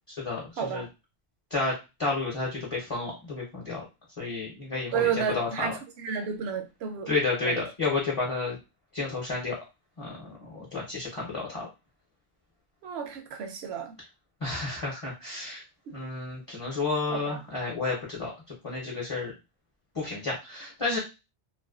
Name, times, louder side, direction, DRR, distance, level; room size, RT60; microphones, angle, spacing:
voice 1, 0.2-0.8 1.5-1.7 2.0-3.8 4.2-5.7 7.1-8.6 8.9-9.6 10.0-11.7 14.4-15.6 15.9-18.3 18.6-19.3 19.9-21.0, left 3 dB, 35° left, 0.7 m, -31 dB
voice 2, 4.9-7.1 7.4-7.6 12.8-14.0 17.1-17.4, right 7 dB, 70° right, 0.8 m, -31 dB
2.4 x 2.2 x 2.3 m
omnidirectional pair, 1.2 m